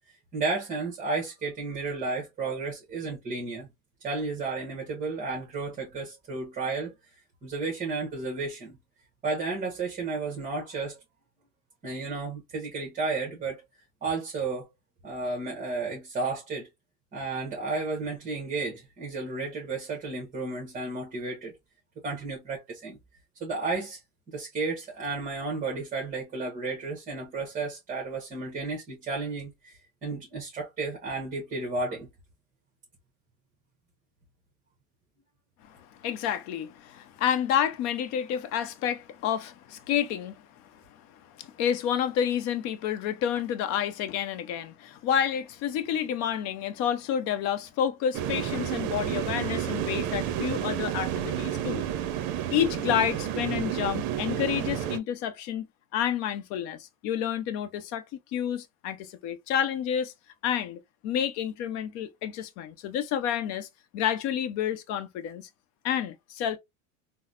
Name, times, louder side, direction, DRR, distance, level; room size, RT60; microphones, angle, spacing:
voice 1, 0.3-3.7 4.0-6.9 7.4-8.8 9.2-11.0 11.8-13.6 14.0-14.7 15.0-16.7 17.1-21.5 22.0-23.0 23.4-24.0 24.3-32.1, right 3 dB, 20° right, 1.0 m, -32 dB
voice 2, 35.7-51.8 52.5-55.7 55.9-58.0 58.3-60.1 60.4-63.7 63.9-65.5 65.8-66.6, left 9 dB, 45° left, 0.7 m, -29 dB
sound 1, 48.1-55.0, right 10 dB, 50° right, 0.7 m, -30 dB
3.9 x 2.1 x 2.4 m
supercardioid pair, 130°, 37 cm